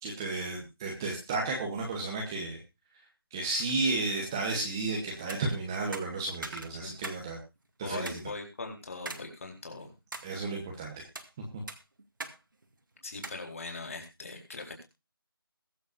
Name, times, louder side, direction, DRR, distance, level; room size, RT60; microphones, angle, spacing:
voice 1, 0.0-2.6 3.3-7.4 7.8-8.2 10.2-11.0 11.5-11.6, right 3 dB, 10° right, -1 dB, 1.1 m, -33 dB
sound 1, 5.2-5.4 5.9-7.2 7.6-7.7 8.1-8.2 9.1-9.3 9.7-10.3 10.9-11.3 11.7-12.4 12.6-12.7 13.2-13.4, right 3 dB, 55° right, 2.1 m, -41 dB
voice 2, 7.8-9.9 13.0-14.8, left 3 dB, 35° left, 2 dB, 4.2 m, -40 dB
22.0 x 7.9 x 2.6 m, 0.27 s
figure-of-eight pair, 175°, 13 cm